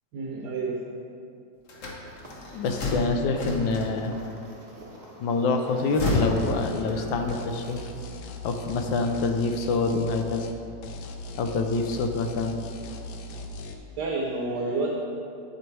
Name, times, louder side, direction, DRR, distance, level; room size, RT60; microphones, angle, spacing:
voice 1, 0.1-0.8 14.0-14.9, right 3 dB, 65° right, -1 dB, 1.3 m, -29 dB
sound 1, 1.7-4.3 5.6-7.4, left 2 dB, 50° left, 1.2 m, -30 dB
sound 2, 2.1-8.0, right 1 dB, 30° right, 1.0 m, -46 dB
voice 2, 2.5-4.1 5.2-7.8 8.4-10.5 11.3-12.6, left 3 dB, 85° left, 5 dB, 1.4 m, -26 dB
sound 3, 6.4-6.9 7.3-10.6 10.8-13.7, left 1 dB, 70° left, 1.1 m, -39 dB
9.0 x 7.6 x 3.2 m, 2.5 s
omnidirectional pair, 2.1 m